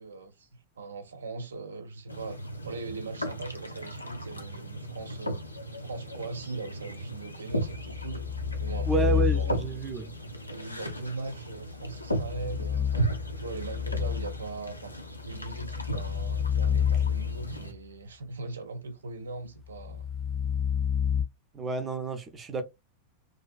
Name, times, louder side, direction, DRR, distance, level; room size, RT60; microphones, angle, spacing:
voice 1, 0.0-5.4 5.8-8.3 8.6-9.7 10.5-14.9 15.3-20.1, right 3 dB, 70° right, 0.3 m, -40 dB
sound 1, 2.1-17.7, right 1 dB, 85° left, 0.4 m, -36 dB
sound 2, 7.6-9.9 12.0-14.6 15.2-17.7 19.7-21.2, left 8 dB, 25° left, 0.4 m, -29 dB
voice 2, 8.9-10.1 21.5-22.6, right 3 dB, 20° right, 0.6 m, -30 dB
2.4 x 2.4 x 2.3 m
figure-of-eight pair, 90°, 0 cm